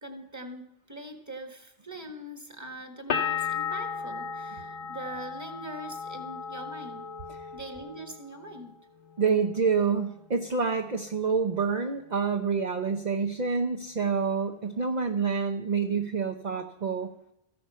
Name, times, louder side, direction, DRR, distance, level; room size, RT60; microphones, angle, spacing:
voice 1, 0.0-7.1 7.5-8.8, right 1 dB, 15° right, 4 dB, 1.5 m, -42 dB
sound 1, 3.1-8.7 9.0-9.8, left 6 dB, 55° left, 0.9 m, -35 dB
voice 2, 9.2-17.1, right 5 dB, 45° right, 4 dB, 0.9 m, -27 dB
14.5 x 11.5 x 5.6 m, 0.80 s
omnidirectional pair, 1.1 m